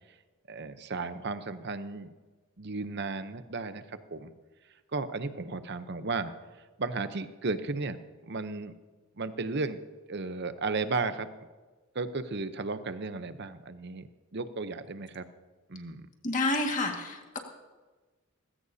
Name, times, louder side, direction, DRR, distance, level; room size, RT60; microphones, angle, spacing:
voice 1, 0.5-2.1 2.6-4.3 4.9-6.3 6.8-8.7 9.2-9.8 10.1-11.3 11.9-15.3 15.7-16.1, right 3 dB, 50° right, 11 dB, 0.7 m, -34 dB
voice 2, 16.2-17.4, left 2 dB, 35° left, 2 dB, 1.9 m, -29 dB
18.5 x 16.0 x 2.8 m, 1.3 s
head